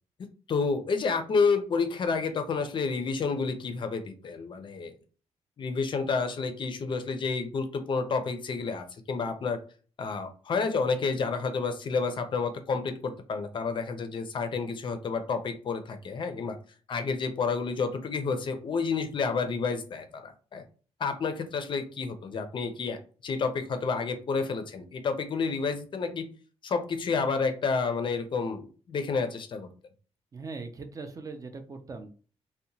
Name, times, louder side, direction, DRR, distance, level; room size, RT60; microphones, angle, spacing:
voice 1, 0.5-4.9 5.6-9.6 10.0-16.6 16.9-20.6 21.0-26.3 26.6-29.7, left 4 dB, 45° left, 8 dB, 0.4 m, -30 dB
voice 2, 30.3-32.1, right 4 dB, 30° right, 7 dB, 0.3 m, -40 dB
2.8 x 2.1 x 2.6 m, 0.39 s
wide cardioid pair, 135°, 12 cm